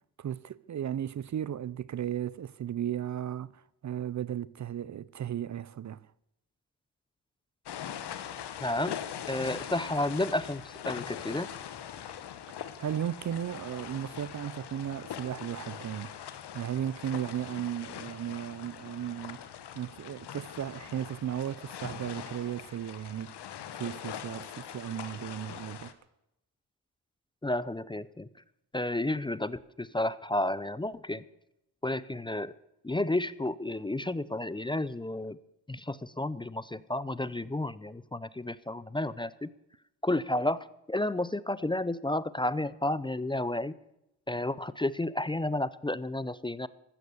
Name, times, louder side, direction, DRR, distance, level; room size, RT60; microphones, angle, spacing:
voice 1, 0.2-6.0 12.8-16.3 16.5-19.4 19.7-23.3 23.7-25.9, right 10 dB, 45° right, 0.6 m, -35 dB
sound 1, 7.7-25.9, left 9 dB, 80° left, 1.5 m, -42 dB
voice 2, 8.6-9.0 9.3-11.5 27.4-28.3 28.7-31.2 31.8-32.5 32.8-35.4 35.7-39.5 40.0-40.6 40.9-43.7 44.3-46.7, left 1 dB, 10° left, 0.6 m, -31 dB
15.0 x 13.0 x 7.0 m
cardioid pair, 95°, 40 cm